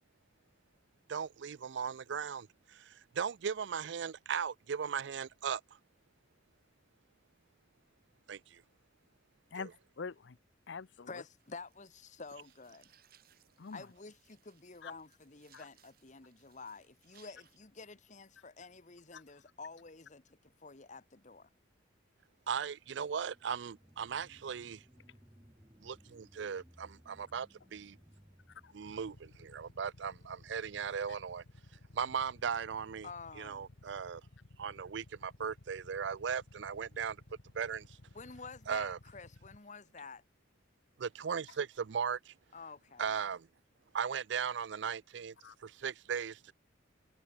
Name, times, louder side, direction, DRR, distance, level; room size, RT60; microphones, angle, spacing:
voice 1, 1.1-5.6 8.3-8.6 9.6-9.7 22.5-24.8 25.8-28.0 28.7-31.4 31.9-33.1 33.4-34.2 34.6-37.2 37.5-38.0 38.7-39.0 41.0-42.3 43.0-43.5 43.9-45.3 45.6-46.5, right 7 dB, 65° right, 0.4 m, -37 dB
voice 2, 9.5-10.4 10.7-11.1 13.6-13.8 14.8-14.9 15.5-15.6 19.1-19.2 28.6-28.7 45.4-45.6, left 5 dB, 65° left, 0.6 m, -44 dB
sound 1, 10.9-17.6, right 10 dB, 50° right, 1.7 m, -68 dB
voice 3, 11.1-12.9 13.7-21.5 33.0-33.7 38.1-40.2 42.5-43.1, left 4 dB, 40° left, 1.1 m, -50 dB
sound 2, 22.7-31.8 32.3-32.4, equal, 15° right, 4.9 m, -63 dB
Motorcycle / Idling, 28.9-39.6, left 2 dB, 85° left, 1.2 m, -57 dB
head